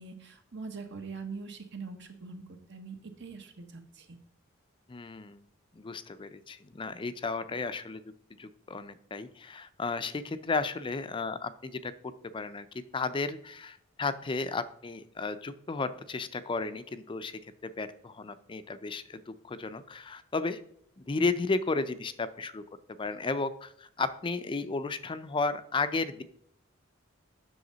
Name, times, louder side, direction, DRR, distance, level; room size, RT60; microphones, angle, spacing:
voice 1, 0.0-4.2, right 4 dB, 60° right, 6 dB, 1.3 m, -43 dB
voice 2, 4.9-5.4 5.7-8.0 8.4-12.7 12.9-20.6 21.0-22.6 23.0-26.2, left 3 dB, 25° left, 12 dB, 0.4 m, -33 dB
7.9 x 6.3 x 3.9 m, 0.68 s
head